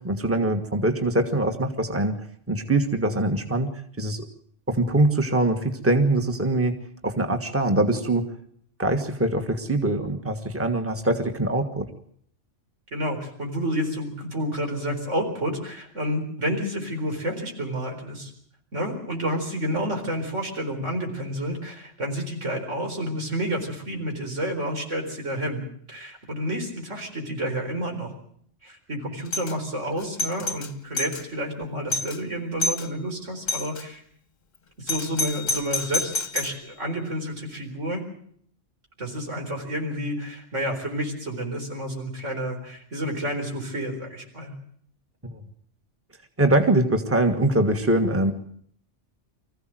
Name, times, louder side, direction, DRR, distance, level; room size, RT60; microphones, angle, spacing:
voice 1, 0.0-2.2 2.5-3.7 4.0-4.3 4.7-6.7 7.0-8.3 8.8-11.9 45.2-45.4 46.4-48.3, right 2 dB, 10° right, 5 dB, 1.6 m, -23 dB
voice 2, 12.9-18.3 18.7-28.2 28.6-34.0 34.8-38.0 39.0-44.5, equal, 85° right, 2 dB, 4.6 m, -30 dB
Doorbell, 29.3-29.6 30.0-31.2 31.6-31.7 31.9-32.2 32.6-32.9 33.5-33.8 34.9-36.6, left 2 dB, 40° left, 1.1 m, -28 dB
24.5 x 15.0 x 7.6 m, 0.65 s
omnidirectional pair, 1.2 m